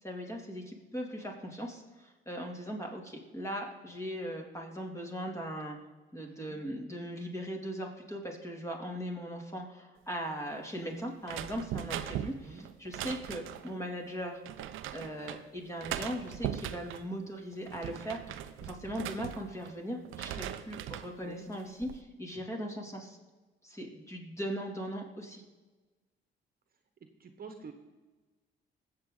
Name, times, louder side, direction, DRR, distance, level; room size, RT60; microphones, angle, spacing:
voice 1, 0.0-5.8 6.1-14.4 14.9-23.2 23.6-25.4, equal, 15° left, 1 dB, 2.7 m, -39 dB
voice 2, 6.2-6.6 12.2-12.6 21.2-21.5 27.2-27.7, right 5 dB, 50° right, 6 dB, 1.3 m, -48 dB
sound 1, 11.2-13.7 14.5-15.4 15.8-17.1 17.5-19.7 20.0-21.1 21.6-22.0, right 11 dB, 90° right, 0.6 m, -39 dB
19.5 x 7.7 x 3.9 m, 1.3 s
cardioid pair, 90°, 20 cm